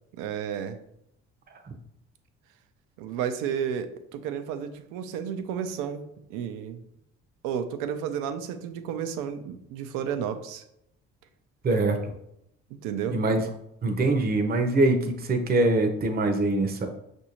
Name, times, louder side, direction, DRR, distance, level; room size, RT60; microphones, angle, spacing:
voice 1, 0.2-0.8 3.0-6.0 6.3-6.8 7.4-10.6 12.8-13.2, right 8 dB, 75° right, 9 dB, 0.6 m, -32 dB
voice 2, 11.6-12.0 13.1-13.5 13.8-16.9, right 2 dB, 30° right, 4 dB, 0.7 m, -23 dB
6.0 x 2.6 x 2.9 m, 0.79 s
hypercardioid pair, 60°, 31 cm